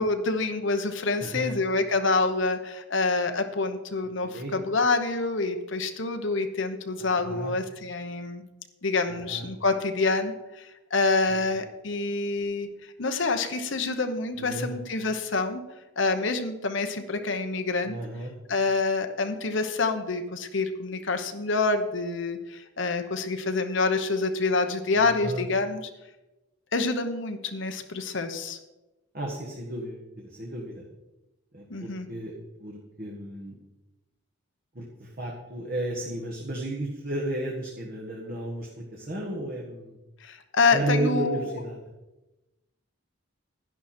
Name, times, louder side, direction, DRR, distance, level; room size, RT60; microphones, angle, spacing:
voice 1, 0.0-8.4 8.8-12.7 13.0-15.6 16.0-17.9 18.5-25.9 26.7-28.6 31.7-32.1 40.2-41.6, left 3 dB, 65° left, 7 dB, 1.0 m, -27 dB
voice 2, 1.2-1.6 4.2-4.5 7.0-7.5 9.1-9.5 11.3-11.4 14.3-14.7 17.9-18.3 24.9-25.4 29.1-30.9 31.5-33.5 34.7-40.0 40.7-41.9, right 1 dB, 45° right, -1 dB, 1.6 m, -33 dB
11.0 x 11.0 x 4.4 m, 1.0 s
head